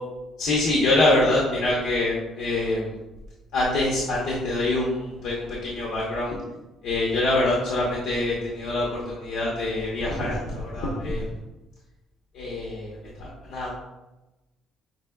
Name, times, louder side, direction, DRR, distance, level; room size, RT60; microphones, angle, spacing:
voice 1, 0.4-2.9 3.5-6.4 6.8-11.3 12.3-13.7, left 2 dB, 80° left, -3 dB, 0.9 m, -25 dB
5.7 x 2.9 x 2.3 m, 1.0 s
cardioid pair, 145°, 0 cm